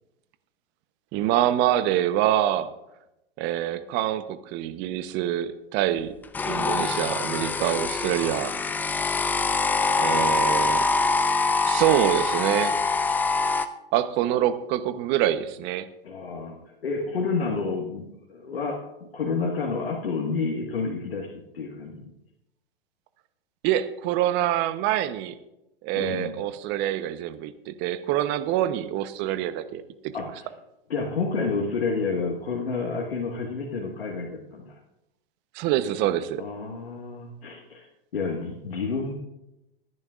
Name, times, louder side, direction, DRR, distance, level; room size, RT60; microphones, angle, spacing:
voice 1, 1.1-2.7 3.4-6.1 6.5-8.5 10.0-10.9 11.7-12.8 13.9-15.9 23.6-25.4 25.8-30.1 35.5-36.4, right 12 dB, 35° right, 12 dB, 0.9 m, -25 dB
sound 1, 6.3-13.7, left 4 dB, 5° left, 0.3 m, -24 dB
voice 2, 16.0-16.6 16.8-22.1 25.9-26.4 30.1-30.5 30.9-34.8 36.4-37.9 38.1-39.1, left 4 dB, 85° left, 0 dB, 1.8 m, -30 dB
22.5 x 10.5 x 2.5 m, 0.90 s
hypercardioid pair, 120°, 30 cm